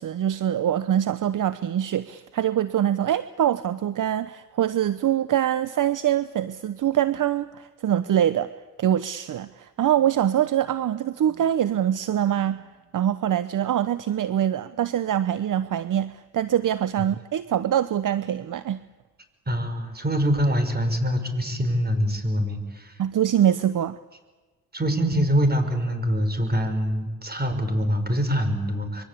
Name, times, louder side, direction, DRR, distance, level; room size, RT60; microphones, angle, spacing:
voice 1, 0.0-8.5 8.8-12.6 12.9-18.8 23.0-24.0, right 10 dB, 55° right, 14 dB, 0.9 m, -24 dB
voice 2, 19.5-23.0 24.7-29.0, equal, 25° right, 8 dB, 5.7 m, -24 dB
25.5 x 23.5 x 8.4 m, 1.2 s
supercardioid pair, 65°, 37 cm